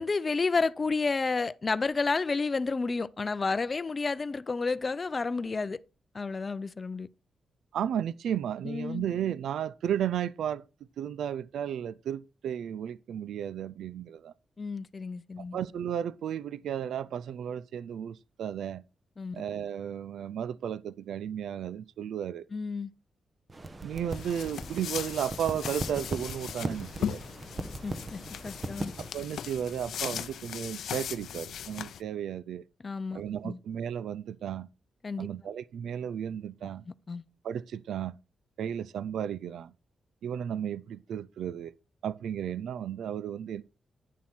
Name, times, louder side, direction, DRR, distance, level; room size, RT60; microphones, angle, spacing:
voice 1, 0.0-5.8 6.1-7.1 8.6-9.1 14.6-15.6 19.2-19.4 22.5-22.9 27.6-28.9 32.8-33.6 35.0-35.3 36.9-37.2, left 4 dB, 30° left, 0.5 m, -31 dB
voice 2, 7.7-10.6 11.0-14.3 15.5-18.8 19.3-22.5 23.8-27.2 29.1-32.6 33.1-34.7 35.2-36.8 37.4-38.1 38.6-39.7 40.2-41.7 42.0-43.6, right 9 dB, 90° right, 0.4 m, -34 dB
sound 1, 23.5-29.1, right 2 dB, 25° right, 0.9 m, -39 dB
sound 2, 24.1-32.0, left 9 dB, 80° left, 0.6 m, -38 dB
10.5 x 7.2 x 4.4 m
wide cardioid pair, 140°, 0 cm